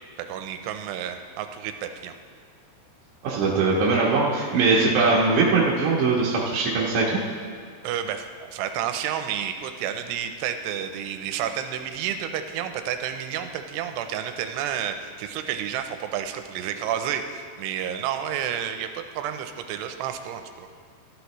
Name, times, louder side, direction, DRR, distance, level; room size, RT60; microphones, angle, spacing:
voice 1, 0.2-2.1 7.8-20.7, right 9 dB, 85° right, 7 dB, 2.7 m, -30 dB
voice 2, 3.2-7.2, right 3 dB, 65° right, -5 dB, 2.2 m, -21 dB
13.5 x 11.5 x 3.1 m, 2.1 s
omnidirectional pair, 4.9 m